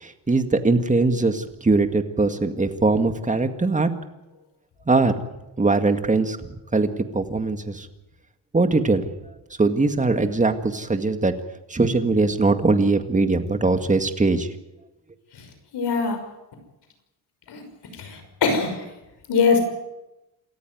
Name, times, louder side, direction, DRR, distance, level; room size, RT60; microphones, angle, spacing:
voice 1, 0.0-3.9 4.9-5.1 5.6-7.9 8.5-9.0 9.6-11.3 11.7-14.5, right 3 dB, 20° right, 8 dB, 2.0 m, -21 dB
voice 2, 15.7-16.2 17.5-17.6 18.0-18.8 19.3-19.6, left 5 dB, 75° left, 7 dB, 6.0 m, -22 dB
28.0 x 14.0 x 9.5 m, 0.97 s
cardioid pair, 120°, 41 cm